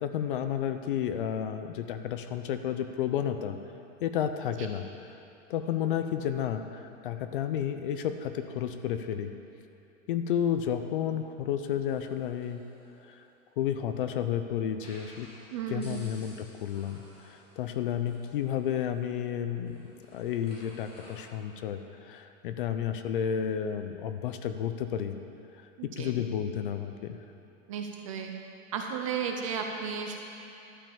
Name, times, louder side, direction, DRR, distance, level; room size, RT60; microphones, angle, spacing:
voice 1, 0.0-3.6 4.0-4.9 5.5-9.3 10.1-12.6 13.0-13.3 13.6-15.3 15.7-19.8 20.1-25.1 25.8-27.2, left 9 dB, 45° left, 9 dB, 0.5 m, -31 dB
sound 1, 11.9-13.9 14.7-21.3, left 1 dB, 15° left, 1.6 m, -56 dB
voice 2, 15.5-16.0 25.8-26.1 27.7-28.3 28.7-30.2, right 6 dB, 25° right, 3 dB, 0.4 m, -34 dB
12.0 x 5.5 x 7.0 m, 2.7 s
supercardioid pair, 170°, 40 cm